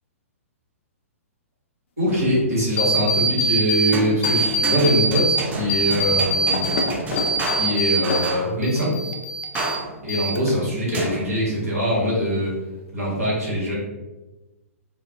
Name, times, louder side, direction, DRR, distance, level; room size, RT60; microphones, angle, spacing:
voice 1, 2.0-6.7 7.5-8.9 10.0-12.5 12.9-13.7, equal, 80° right, -6 dB, 1.0 m, -23 dB
sound 1, 2.1-3.0 3.9-8.7 9.6-10.2 10.9-11.8, right 2 dB, 20° right, 0.3 m, -31 dB
sound 2, 2.8-3.9 4.2-5.4 5.7-8.3 8.6-9.8 10.1-10.7, right 1 dB, 55° left, 0.4 m, -23 dB
2.3 x 2.1 x 2.5 m, 1.1 s
figure-of-eight pair, 115°, 8 cm